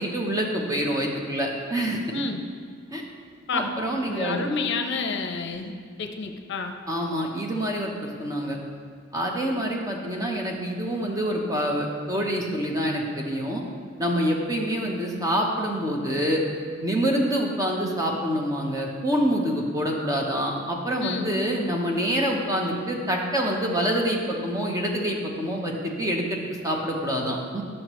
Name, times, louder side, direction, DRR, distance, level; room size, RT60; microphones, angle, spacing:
voice 1, 0.0-2.0 2.9-3.0 3.5-4.4 6.9-8.6 9.1-13.6 14.0-16.4 16.8-27.6, equal, 15° right, 0 dB, 0.8 m, -26 dB
voice 2, 2.1-2.4 3.5-3.7 4.0-6.7 21.0-21.3, left 4 dB, 60° left, 5 dB, 0.6 m, -29 dB
10.5 x 6.4 x 3.0 m, 2.1 s
head